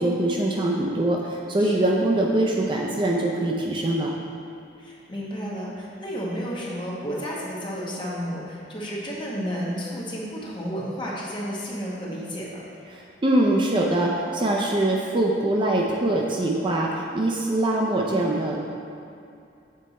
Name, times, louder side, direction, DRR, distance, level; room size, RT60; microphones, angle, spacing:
voice 1, 0.0-4.1 12.9-18.6, right 1 dB, 25° right, -1 dB, 0.4 m, -23 dB
voice 2, 1.6-1.9 4.8-12.7, equal, 25° left, -5 dB, 1.1 m, -32 dB
7.5 x 4.2 x 4.1 m, 2.6 s
head